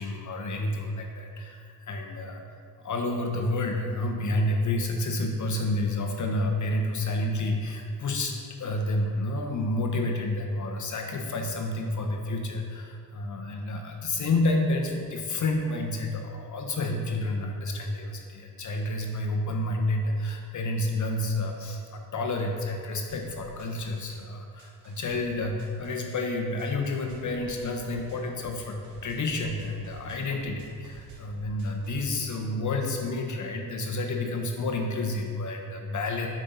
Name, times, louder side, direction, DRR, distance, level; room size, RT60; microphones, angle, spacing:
voice 1, 0.0-2.4 2.8-36.3, left 2 dB, 40° left, 2 dB, 0.9 m, -30 dB
sound 1, 23.0-24.2 24.6-26.2 26.6-32.0, right 4 dB, 75° right, 1.4 m, -49 dB
6.5 x 6.4 x 4.0 m, 2.3 s
hypercardioid pair, 60°, 46 cm